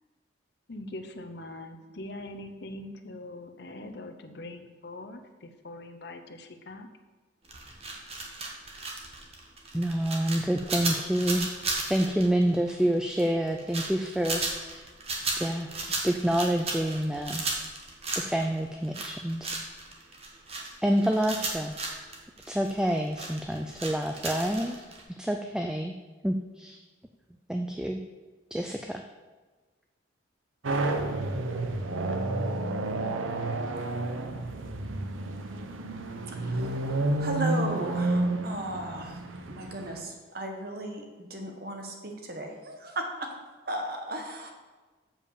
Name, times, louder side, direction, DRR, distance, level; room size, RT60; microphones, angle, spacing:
voice 1, 0.7-6.9, left 1 dB, 55° left, 7 dB, 0.7 m, -42 dB
sound 1, 7.4-25.0, right 3 dB, 30° right, 1.2 m, -34 dB
voice 2, 9.7-11.5 11.9-14.9 15.4-17.4 18.2-19.6 20.8-21.7 22.5-24.7 25.2-25.9 26.2-26.8 27.5-28.0 28.5-29.0, right 1 dB, 5° right, 3 dB, 0.3 m, -28 dB
sound 2, 30.6-40.0, right 2 dB, 90° right, 0.7 m, -30 dB
voice 3, 36.3-39.2 39.5-43.3 43.6-44.5, right 1 dB, 50° right, 3 dB, 1.2 m, -36 dB
7.3 x 5.3 x 6.8 m, 1.3 s
head